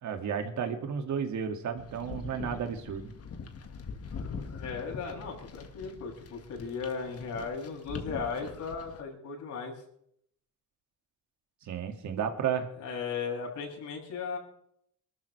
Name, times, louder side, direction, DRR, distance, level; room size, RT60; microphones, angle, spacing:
voice 1, 0.0-3.1 11.6-12.7, right 7 dB, 70° right, 6 dB, 2.2 m, -33 dB
sound 1, 1.8-9.0, left 5 dB, 50° left, 1.8 m, -43 dB
voice 2, 4.5-9.7 12.8-14.4, left 5 dB, 75° left, -1 dB, 6.9 m, -36 dB
23.5 x 13.0 x 3.3 m, 0.70 s
cardioid pair, 90°, 30 cm